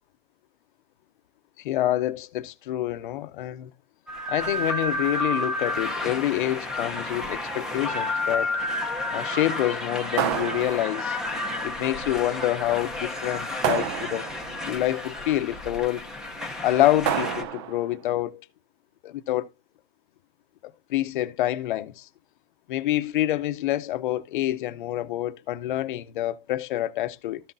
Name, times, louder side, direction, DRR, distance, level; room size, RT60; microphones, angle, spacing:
voice 1, 1.6-3.7 4.3-8.6 9.1-11.2 11.6-14.3 14.6-16.1 16.6-18.4 19.0-19.5 20.6-22.1 22.7-27.4, left 14 dB, 55° left, 0.7 m, -27 dB
sound 1, 4.1-17.4, left 2 dB, ahead, 0.8 m, -31 dB
sound 2, 10.2-11.2 13.6-14.6 17.0-17.9, right 10 dB, 30° right, 0.4 m, -29 dB
14.0 x 5.9 x 2.7 m
supercardioid pair, 165°, 31 cm